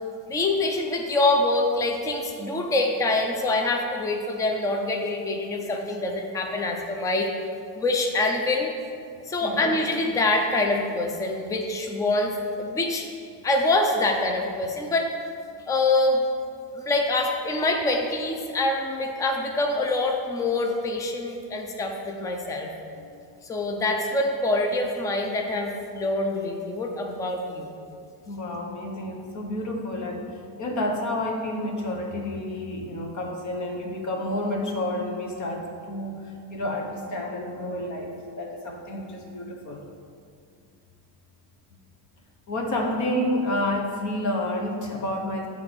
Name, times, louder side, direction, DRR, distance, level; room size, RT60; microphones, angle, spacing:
voice 1, 0.3-7.3 7.8-8.7 9.3-12.3 12.6-13.1 13.4-15.1 15.7-16.2 16.8-22.7 23.4-27.8, left 2 dB, 10° left, 2 dB, 0.4 m, -25 dB
voice 2, 28.3-39.8 42.5-45.5, left 1 dB, 40° left, 1 dB, 1.1 m, -30 dB
8.1 x 3.8 x 6.0 m, 2.3 s
cardioid pair, 160°, 45 cm